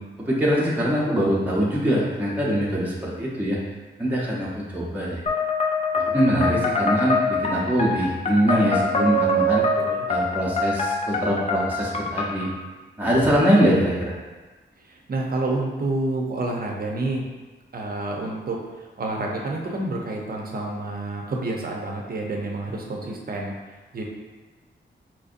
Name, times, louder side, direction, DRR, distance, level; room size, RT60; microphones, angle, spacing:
voice 1, 0.2-3.6 4.0-5.2 5.9-9.6 10.1-12.5 13.0-14.1, equal, 10° right, -6 dB, 0.7 m, -23 dB
sound 1, 5.3-12.5, left 2 dB, 30° left, 0.4 m, -24 dB
voice 2, 9.7-10.1 14.8-17.3 17.7-23.5 23.9-24.0, right 2 dB, 45° right, -1 dB, 0.6 m, -29 dB
4.3 x 2.6 x 2.5 m, 1.3 s
wide cardioid pair, 110°, 20 cm